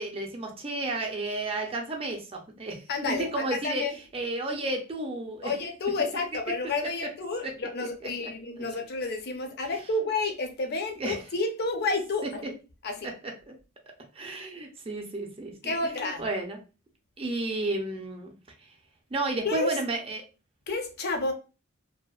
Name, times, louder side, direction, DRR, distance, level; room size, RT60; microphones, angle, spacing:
voice 1, 0.0-3.9 4.1-5.5 8.6-8.7 11.0-11.2 13.2-13.5 14.1-16.6 17.2-18.3 19.1-20.2, right 2 dB, 30° right, 0.5 m, -32 dB
voice 2, 2.9-4.0 5.4-12.4 12.8-13.1 15.6-16.2 19.4-19.7 20.7-21.3, left 3 dB, 50° left, 0.5 m, -30 dB
2.7 x 2.0 x 2.3 m
head